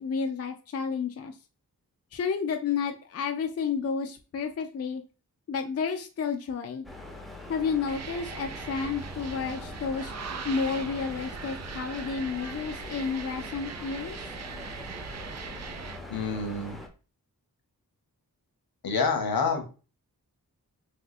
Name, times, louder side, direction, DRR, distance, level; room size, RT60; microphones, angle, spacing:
voice 1, 0.0-1.4 2.1-5.0 5.5-6.9 7.5-10.1 10.4-14.4, left 5 dB, 45° left, 5 dB, 0.4 m, -31 dB
sound 1, 6.8-16.9, left 2 dB, ahead, 0.6 m, -43 dB
sound 2, 7.9-16.0, right 6 dB, 45° right, 0.4 m, -40 dB
voice 2, 16.1-16.8 18.8-19.6, left 4 dB, 75° left, 4 dB, 0.8 m, -27 dB
3.3 x 2.7 x 2.4 m, 0.34 s
wide cardioid pair, 55°, 37 cm